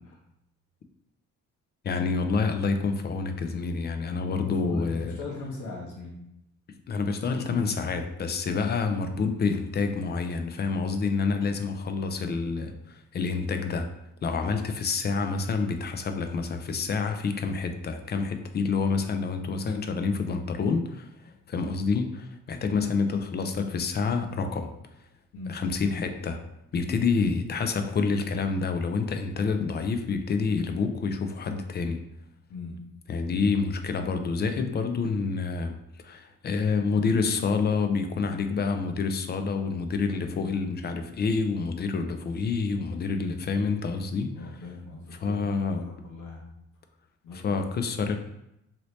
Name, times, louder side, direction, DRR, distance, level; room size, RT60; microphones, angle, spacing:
voice 1, 1.8-5.2 6.9-13.9 14.2-24.7 25.5-26.4 26.7-32.0 33.1-44.3 45.2-45.8 47.3-48.2, left 4 dB, 35° left, 7 dB, 0.4 m, -28 dB
voice 2, 4.2-6.2 25.3-25.6 30.5-30.7 32.5-32.8 44.3-45.4 45.7-46.5 47.2-47.5, left 3 dB, 80° left, -4 dB, 1.0 m, -39 dB
2.8 x 2.8 x 3.1 m, 0.84 s
cardioid pair, 90°, 30 cm